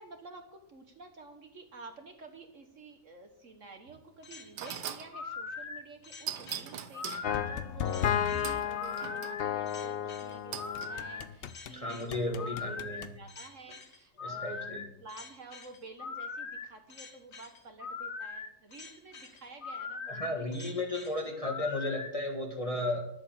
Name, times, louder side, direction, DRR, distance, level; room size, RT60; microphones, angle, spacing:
voice 1, 0.0-12.0 12.3-20.5, right 3 dB, 50° right, 5 dB, 1.4 m, -51 dB
sound 1, 3.9-4.0 4.6-5.1 6.3-7.3 8.4-9.4 10.5-10.9, right 9 dB, 85° right, 1.4 m, -40 dB
sound 2, 4.2-22.1, left 4 dB, 45° left, 1.3 m, -42 dB
sound 3, 7.2-11.7 12.1-13.1, left 9 dB, 80° left, 0.5 m, -33 dB
voice 2, 11.7-13.1 14.2-14.9 20.1-23.0, left 2 dB, 20° left, 1 dB, 1.6 m, -34 dB
11.0 x 7.8 x 6.6 m, 0.77 s
omnidirectional pair, 1.8 m